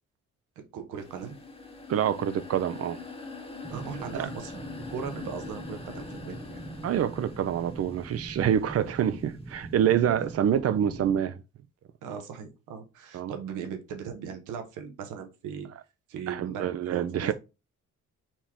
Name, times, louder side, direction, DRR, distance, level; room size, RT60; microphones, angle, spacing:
voice 1, 0.6-1.3 3.7-6.6 10.2-10.3 12.0-15.7 16.1-17.3, right 7 dB, 85° right, 1.0 m, -38 dB
sound 1, 1.0-9.0, left 3 dB, 20° left, 1.0 m, -43 dB
voice 2, 1.9-3.0 4.1-4.3 6.8-11.4 13.1-13.3 16.3-17.3, right 9 dB, 55° right, 0.5 m, -26 dB
sound 2, 3.6-11.2, right 2 dB, 5° right, 0.7 m, -43 dB
4.4 x 2.9 x 3.5 m
cardioid pair, 90°, 30 cm